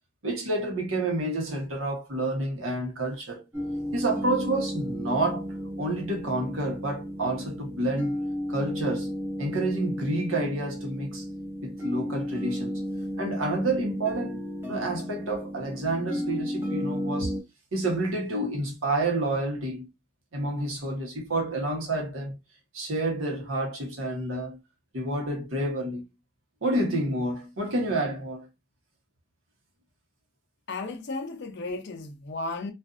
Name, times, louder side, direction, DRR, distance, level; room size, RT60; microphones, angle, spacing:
voice 1, 0.2-3.5 3.9-5.5 5.8-8.2 8.5-9.1 9.4-11.2 11.6-12.9 13.2-17.4 17.7-19.9 20.3-22.4 22.7-24.6 24.9-26.0 26.6-28.5, right 2 dB, 85° right, 1.0 m, -29 dB
sound 1, 3.5-17.4, equal, 10° right, 0.6 m, -33 dB
voice 2, 30.7-32.7, left 3 dB, 60° left, 0.6 m, -34 dB
2.5 x 2.4 x 2.4 m
head